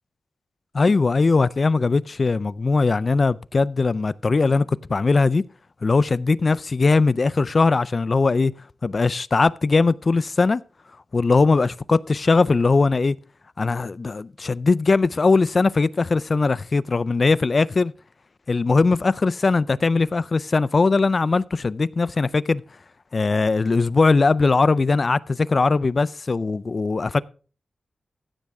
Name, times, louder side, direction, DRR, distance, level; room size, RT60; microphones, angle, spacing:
voice 1, 0.7-5.4 5.8-8.5 8.8-10.6 11.1-13.2 13.6-17.9 18.5-22.6 23.1-27.2, left 3 dB, 40° left, 0.4 m, -20 dB
15.0 x 7.5 x 3.5 m
wide cardioid pair, 110°, 0 cm